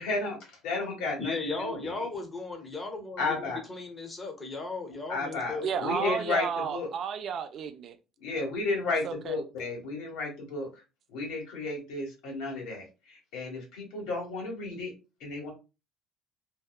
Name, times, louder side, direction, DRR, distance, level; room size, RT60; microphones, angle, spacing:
voice 1, 0.0-0.4 0.6-2.1 3.2-3.6 5.1-6.9 8.2-10.7 11.1-14.9 15.2-15.5, left 3 dB, 85° left, 1.4 m, -33 dB
voice 2, 1.2-6.2, left 3 dB, 20° left, 0.7 m, -36 dB
voice 3, 5.6-8.0 9.0-9.4, right 7 dB, 50° right, 0.3 m, -32 dB
2.7 x 2.2 x 2.2 m
cardioid pair, 125°, 0 cm